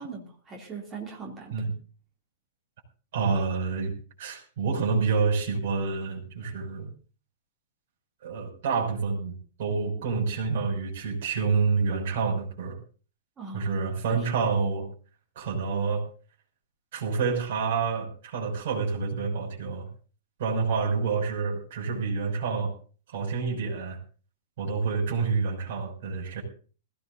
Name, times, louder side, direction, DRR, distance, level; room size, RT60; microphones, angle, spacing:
voice 1, 0.0-1.5 13.4-13.7 14.1-14.3, right 4 dB, 15° right, -1 dB, 2.8 m, -40 dB
voice 2, 3.1-3.9 4.2-6.9 8.2-12.8 13.5-14.9 15.3-16.0 16.9-19.9 20.4-22.7 23.1-24.0 24.6-26.4, right 5 dB, 45° right, -2 dB, 6.2 m, -28 dB
20.5 x 16.5 x 2.7 m, 0.39 s
supercardioid pair, 175°, 0 cm